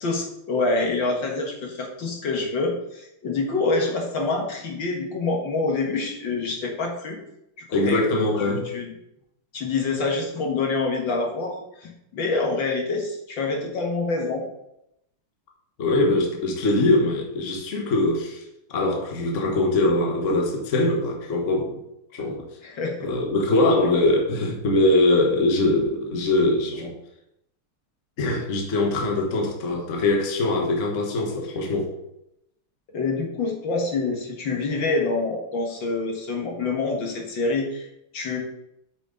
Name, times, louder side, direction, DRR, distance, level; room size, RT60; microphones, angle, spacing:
voice 1, 0.0-7.2 7.9-8.9 9.5-14.4 22.6-23.1 23.5-23.6 32.9-37.9 38.1-38.4, left 3 dB, 60° left, 1 dB, 2.1 m, -26 dB
voice 2, 7.7-8.7 15.8-18.4 18.7-21.8 22.1-22.4 23.0-26.9 28.2-31.9, left 2 dB, 40° left, 1 dB, 1.4 m, -22 dB
8.2 x 6.2 x 3.9 m, 0.81 s
omnidirectional pair, 2.4 m